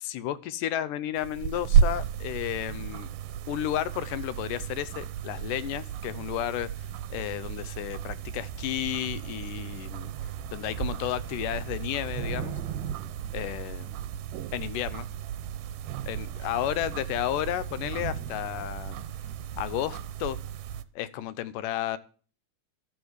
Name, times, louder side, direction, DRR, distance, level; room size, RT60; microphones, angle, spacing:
voice 1, 0.0-3.1 3.5-6.7 7.1-10.1 10.5-12.6 13.3-14.0 14.5-15.1 16.1-19.0 19.6-20.4 21.0-22.0, left 12 dB, 85° left, 15 dB, 2.3 m, -32 dB
sound 1, 1.2-20.8, right 8 dB, 90° right, 2.4 m, -33 dB
Thunder / Rain, 9.7-9.8 10.1-14.2 14.9-15.4 15.8-16.0 16.2-20.0, right 7 dB, 70° right, 3.1 m, -41 dB
13.0 x 7.0 x 8.1 m, 0.41 s
omnidirectional pair, 3.7 m